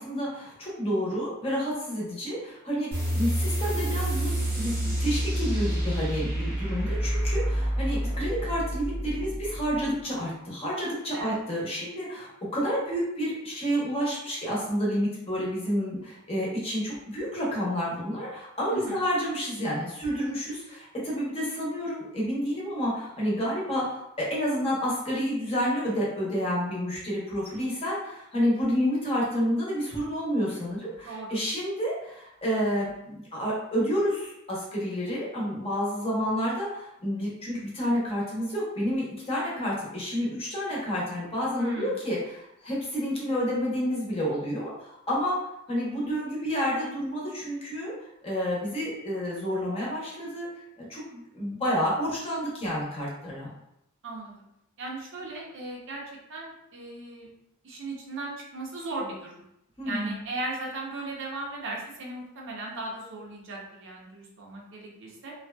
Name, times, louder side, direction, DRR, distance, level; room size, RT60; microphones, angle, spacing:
voice 1, 0.0-47.9 48.2-50.5 50.8-53.5 59.8-60.2, equal, 30° left, -5 dB, 0.8 m, -29 dB
sound 1, 2.9-10.0, right 1 dB, 10° right, 0.7 m, -28 dB
voice 2, 31.0-31.4 41.6-41.9 54.0-54.5 54.8-56.0 56.3-57.3 57.6-59.4 59.8-65.3, right 2 dB, 60° right, -2 dB, 0.6 m, -37 dB
2.6 x 2.2 x 2.2 m, 0.81 s
head